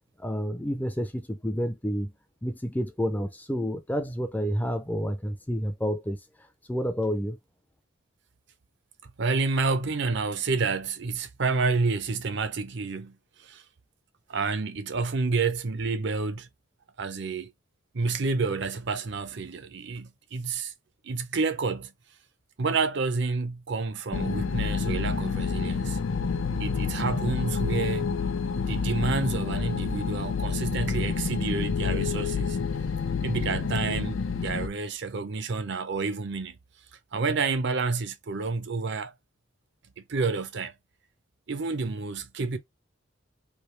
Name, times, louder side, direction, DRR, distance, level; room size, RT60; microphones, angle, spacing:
voice 1, 0.2-2.1 2.4-6.2 6.7-7.4, equal, 10° left, 0.5 m, -29 dB
voice 2, 9.2-13.6 14.3-16.5 17.0-17.5 17.9-20.7 21.0-21.9 22.6-26.0 26.6-28.1 28.7-32.6 33.2-36.6 37.1-39.1 40.0-40.7 41.5-42.6, right 4 dB, 60° right, 0.6 m, -29 dB
sound 1, 24.1-34.7, left 5 dB, 80° left, 0.6 m, -28 dB
3.4 x 2.7 x 3.1 m
head